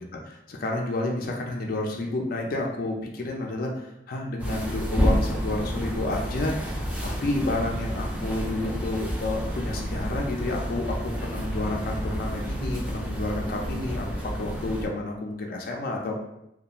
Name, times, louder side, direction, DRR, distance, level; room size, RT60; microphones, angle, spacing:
voice 1, 0.5-3.7 4.1-6.8 7.0-14.1 14.3-16.2, left 2 dB, 55° left, 0 dB, 0.4 m, -30 dB
sound 1, 4.4-14.9, equal, 10° right, 0.5 m, -29 dB
2.8 x 2.2 x 2.4 m, 0.81 s
head